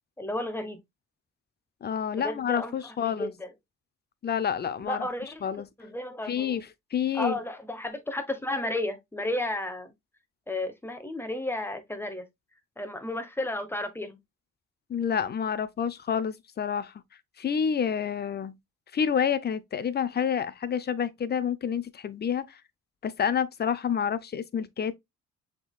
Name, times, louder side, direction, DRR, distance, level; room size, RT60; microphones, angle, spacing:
voice 1, 0.2-0.8 2.1-3.5 4.8-5.4 5.8-6.6 7.1-9.9 10.5-12.2 12.8-14.2, left 1 dB, 5° left, 1.2 m, -33 dB
voice 2, 1.8-3.3 4.2-5.1 5.4-5.7 6.3-7.3 14.9-16.9 17.4-18.6 18.9-22.6 23.0-25.0, left 7 dB, 35° left, 0.6 m, -28 dB
6.0 x 3.7 x 2.3 m
cardioid pair, 90°, 30 cm